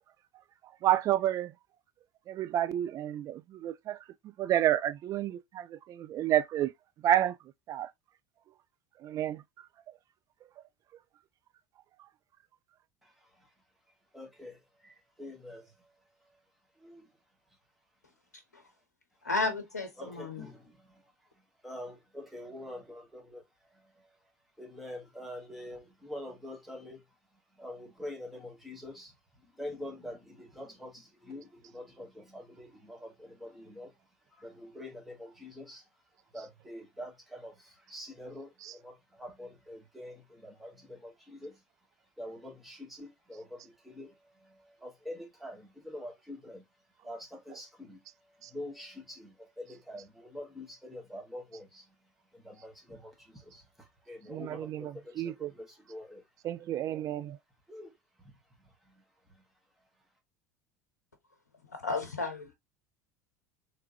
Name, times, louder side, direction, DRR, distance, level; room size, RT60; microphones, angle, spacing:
voice 1, 0.8-1.5 2.3-4.0 4.4-6.7 7.0-7.3 7.7-7.9 9.0-9.4 38.6-38.7 54.3-55.5 56.4-57.4, right 12 dB, 40° right, 0.4 m, -30 dB
voice 2, 13.0-13.5 14.1-15.9 16.2-16.4 16.8-17.0 20.0-21.1 21.6-24.2 24.6-27.0 27.6-33.9 34.3-35.8 36.3-41.6 42.2-46.7 47.0-51.9 52.3-56.2 57.7-57.9 58.2-58.3 58.6-59.0 59.3-59.4, left 1 dB, ahead, 1.8 m, -46 dB
voice 3, 19.2-20.5 61.7-62.5, left 3 dB, 90° left, 0.7 m, -33 dB
3.5 x 3.2 x 2.8 m
hypercardioid pair, 75°, 9 cm